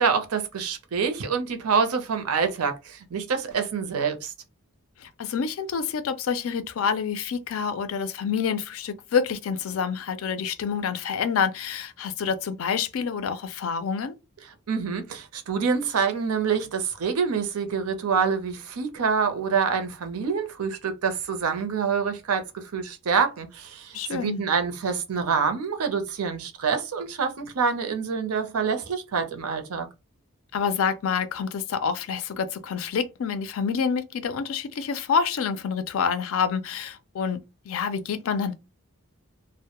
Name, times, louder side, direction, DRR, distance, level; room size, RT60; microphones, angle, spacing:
voice 1, 0.0-4.3 14.7-29.9, right 6 dB, 90° right, 0.5 m, -26 dB
voice 2, 5.0-14.1 23.9-24.4 30.5-37.4 37.7-38.5, left 6 dB, 70° left, 0.4 m, -27 dB
2.1 x 2.0 x 2.9 m
head